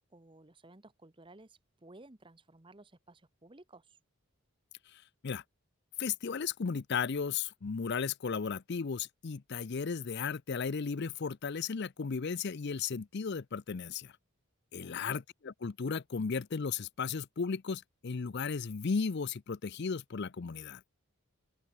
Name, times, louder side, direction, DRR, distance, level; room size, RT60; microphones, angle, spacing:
voice 1, 0.0-4.0 14.7-15.0, right 2 dB, 20° right, 1.0 m, -56 dB
voice 2, 4.9-5.4 6.0-14.1 14.7-20.8, left 5 dB, 50° left, 0.5 m, -35 dB
open air
head